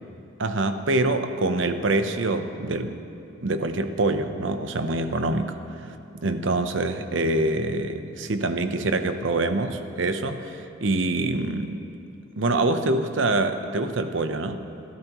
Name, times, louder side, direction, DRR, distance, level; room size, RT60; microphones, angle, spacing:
voice 1, 0.4-3.0 3.4-5.8 6.2-11.8 12.4-14.6, right 2 dB, 75° right, 8 dB, 0.8 m, -25 dB
27.0 x 12.5 x 3.1 m, 2.7 s
head